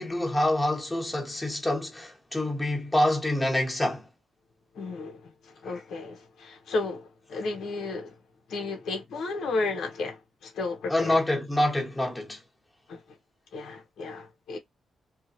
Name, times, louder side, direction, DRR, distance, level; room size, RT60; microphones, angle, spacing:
voice 1, 0.0-4.0 10.9-12.4, left 1 dB, 10° left, 0.8 m, -26 dB
voice 2, 4.7-8.2 8.5-11.2 12.9-13.0 13.5-14.6, left 3 dB, 85° left, 1.0 m, -33 dB
2.7 x 2.4 x 2.7 m
wide cardioid pair, 160°, 0 cm